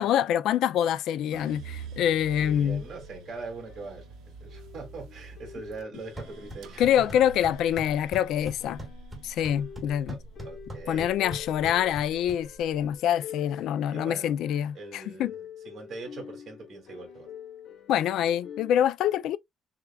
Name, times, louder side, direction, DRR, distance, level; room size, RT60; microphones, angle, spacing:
voice 1, 0.0-2.8 6.8-8.8 9.2-10.2 10.9-15.3 17.9-19.4, left 10 dB, 75° left, 0.3 m, -25 dB
sound 1, 1.1-18.7, left 8 dB, 60° left, 1.0 m, -48 dB
sound 2, 1.3-11.5 12.0-12.7, right 5 dB, 90° right, 0.7 m, -47 dB
voice 2, 2.3-4.1 4.4-7.2 10.1-11.1 11.5-12.0 13.9-14.4 14.7-17.3, right 3 dB, 45° right, 2.2 m, -42 dB
sound 3, 5.9-12.9, right 1 dB, 15° right, 1.6 m, -43 dB
6.6 x 2.4 x 2.2 m
cardioid pair, 165°, 0 cm